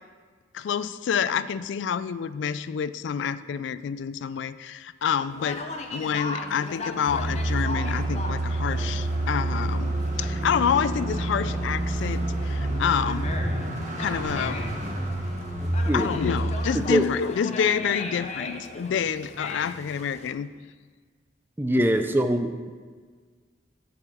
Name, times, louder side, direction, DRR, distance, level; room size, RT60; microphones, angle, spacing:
voice 1, 0.5-13.3 14.0-14.6 15.9-20.5, left 7 dB, 75° left, 15 dB, 0.3 m, -28 dB
Conversation, 5.3-20.3, left 3 dB, 35° left, 0.7 m, -38 dB
sound 1, 7.1-16.9, right 1 dB, 40° right, 1.1 m, -28 dB
voice 2, 15.6-16.1 16.9-17.1 21.6-22.7, equal, 10° right, 8 dB, 0.4 m, -23 dB
7.0 x 4.8 x 6.8 m, 1.6 s
head